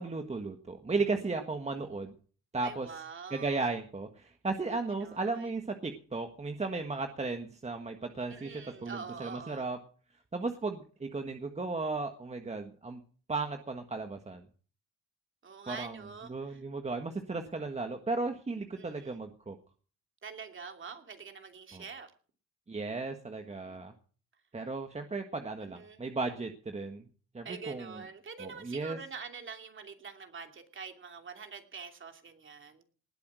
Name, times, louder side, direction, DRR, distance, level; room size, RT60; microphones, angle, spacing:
voice 1, 0.0-2.1 2.5-2.9 3.3-9.8 10.3-13.0 13.3-14.4 15.7-16.0 16.3-19.6 21.7-21.8 22.7-23.9 24.5-27.0 27.3-28.0 28.4-29.0, right 3 dB, 20° right, 1.4 m, -35 dB
voice 2, 2.6-3.6 5.0-5.5 8.3-9.6 15.4-16.6 18.8-19.2 20.2-22.1 25.6-26.0 27.4-32.8, right 5 dB, 40° right, 2.8 m, -45 dB
19.5 x 8.5 x 6.2 m
cardioid pair, 90°, 30 cm